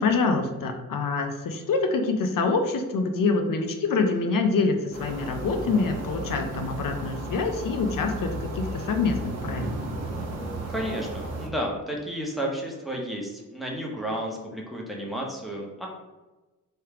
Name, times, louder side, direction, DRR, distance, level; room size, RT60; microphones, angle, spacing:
voice 1, 0.0-9.9, left 4 dB, 75° left, 5 dB, 0.6 m, -26 dB
sound 1, 4.9-11.5, right 1 dB, 50° right, 0.9 m, -34 dB
voice 2, 10.7-15.9, equal, ahead, -2 dB, 0.9 m, -32 dB
3.3 x 3.1 x 4.7 m, 1.1 s
wide cardioid pair, 125°, 34 cm